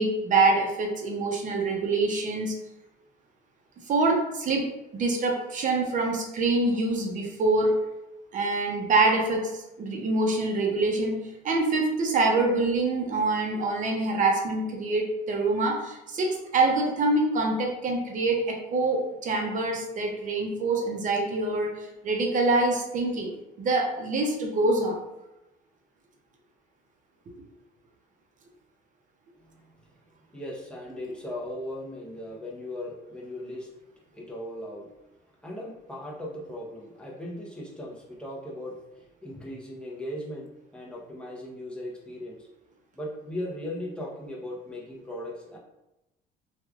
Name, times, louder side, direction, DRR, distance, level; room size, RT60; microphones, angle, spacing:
voice 1, 0.0-2.5 3.9-4.7 4.9-7.7 8.3-11.2 11.4-23.3 23.6-25.0, right 2 dB, 45° right, 1 dB, 0.7 m, -25 dB
voice 2, 29.4-29.9 30.3-33.7 34.1-34.9 35.4-42.5 42.9-45.6, left 1 dB, 5° left, -4 dB, 0.8 m, -38 dB
3.0 x 2.4 x 2.4 m, 0.92 s
cardioid pair, 105°, 18 cm